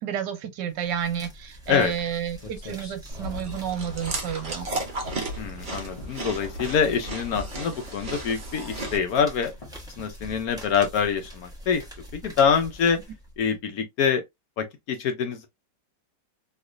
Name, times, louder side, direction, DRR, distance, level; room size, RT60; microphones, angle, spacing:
voice 1, 0.0-4.7, right 9 dB, 85° right, 1.3 m, -31 dB
sound 1, 0.7-13.6, equal, 5° right, 0.7 m, -44 dB
sound 2, 2.1-2.2 2.4-5.0 5.4-5.6 6.0-6.9 7.4-7.7 8.1-8.5 8.8-9.2 9.6-9.8 10.2-10.6, left 2 dB, 30° left, 0.7 m, -43 dB
Chewing mastication, 3.1-9.0, right 2 dB, 40° right, 0.7 m, -34 dB
voice 2, 5.4-9.5 10.0-11.8 12.1-13.0 13.4-14.2 14.6-15.5, left 6 dB, 65° left, 1.0 m, -25 dB
3.2 x 2.8 x 2.5 m
omnidirectional pair, 1.9 m